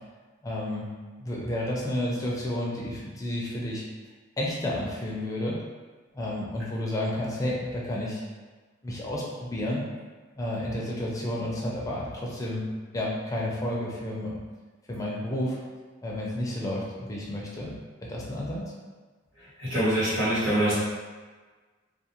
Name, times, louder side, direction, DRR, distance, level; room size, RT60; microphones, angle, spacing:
voice 1, 0.4-0.9 1.2-3.8 4.4-5.6 6.1-8.2 8.8-9.8 10.4-12.6 12.9-14.3 14.9-15.6 16.0-17.7 18.1-18.6, left 1 dB, 15° left, -4 dB, 0.5 m, -31 dB
voice 2, 19.6-20.7, right 1 dB, 75° right, -10 dB, 1.4 m, -24 dB
2.4 x 2.3 x 2.9 m, 1.4 s
head